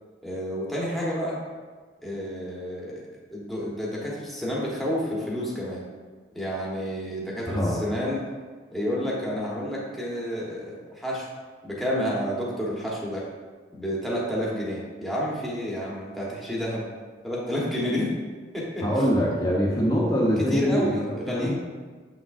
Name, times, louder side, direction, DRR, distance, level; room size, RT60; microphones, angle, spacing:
voice 1, 0.2-1.4 2.0-5.8 6.3-8.2 8.7-11.3 11.6-13.3 13.7-16.9 17.2-18.1 18.5-18.9 20.4-21.6, equal, ahead, -6 dB, 1.2 m, -30 dB
voice 2, 7.5-7.8 18.8-21.6, equal, 20° left, -7 dB, 0.9 m, -24 dB
7.1 x 5.9 x 2.5 m, 1.4 s
head